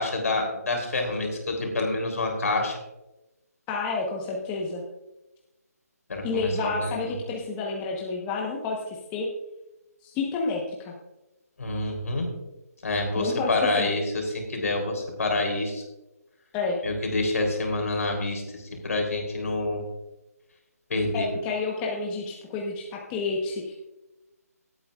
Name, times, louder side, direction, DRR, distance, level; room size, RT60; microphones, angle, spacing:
voice 1, 0.0-2.7 6.1-7.1 11.6-12.3 12.8-15.8 16.8-19.8 20.9-21.3, left 2 dB, 65° left, 2 dB, 3.4 m, -27 dB
voice 2, 3.7-4.8 6.2-9.3 10.0-10.9 13.2-13.9 16.5-16.8 21.1-23.7, left 4 dB, 15° left, -1 dB, 1.1 m, -30 dB
18.5 x 8.8 x 2.5 m, 0.99 s
figure-of-eight pair, 150°, 9 cm